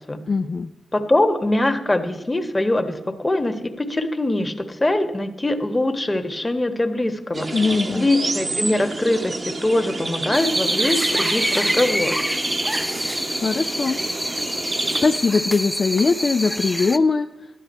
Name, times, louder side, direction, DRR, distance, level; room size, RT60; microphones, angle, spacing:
voice 1, 0.3-0.7 7.5-8.1 13.3-14.0 15.0-17.3, left 4 dB, 50° left, 7 dB, 0.4 m, -21 dB
voice 2, 0.9-7.5 7.9-12.2, left 1 dB, 25° left, 7 dB, 1.3 m, -22 dB
sound 1, 7.3-15.2, right 3 dB, 45° right, 1.0 m, -27 dB
sound 2, 10.3-17.0, equal, ahead, 0.6 m, -27 dB
12.5 x 10.0 x 4.3 m, 0.98 s
supercardioid pair, 40°, 0 cm